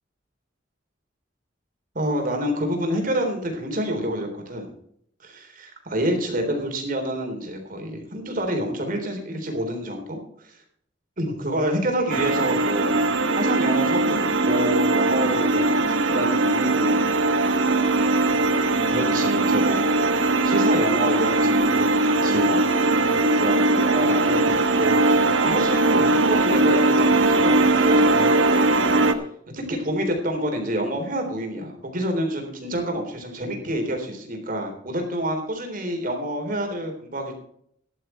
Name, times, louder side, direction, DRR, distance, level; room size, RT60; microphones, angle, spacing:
voice 1, 2.0-4.7 5.2-10.6 11.2-12.9 13.4-17.2 18.9-19.8 20.4-22.6 23.2-28.8 29.5-37.3, right 1 dB, 45° right, 3 dB, 3.7 m, -28 dB
sound 1, 12.1-29.1, right 2 dB, 90° right, 1.4 m, -20 dB
14.0 x 11.0 x 4.5 m, 0.68 s
head